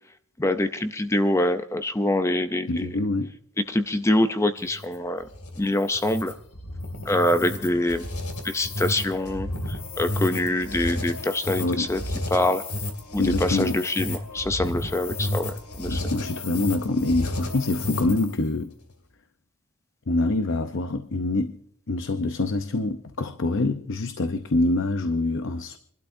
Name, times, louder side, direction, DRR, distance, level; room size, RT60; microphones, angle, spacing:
voice 1, 0.4-3.0 3.7-5.3 5.6-6.3 7.0-8.0 8.4-12.0 12.3-12.6 13.1-16.0, left 1 dB, 10° left, 0.5 m, -25 dB
voice 2, 2.7-3.3 11.6-11.9 13.2-13.8 15.9-18.7 20.1-21.6 21.9-25.8, left 2 dB, 55° left, 0.7 m, -25 dB
sound 1, 4.6-18.4, left 1 dB, 80° left, 2.6 m, -32 dB
27.5 x 12.0 x 2.6 m
head